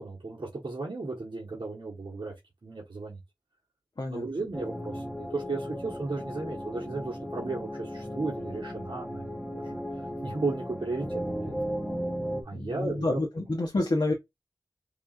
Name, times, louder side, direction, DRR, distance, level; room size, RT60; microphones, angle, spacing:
voice 1, 0.0-2.3 2.6-3.2 4.1-9.8 10.2-11.1 11.4-11.5 12.4-13.2, right 3 dB, 65° right, 1.4 m, -35 dB
sound 1, 4.5-12.4, equal, 5° left, 1.1 m, -36 dB
voice 2, 12.5-14.1, left 2 dB, 55° left, 0.9 m, -28 dB
4.7 x 3.0 x 2.5 m
wide cardioid pair, 70°, 9 cm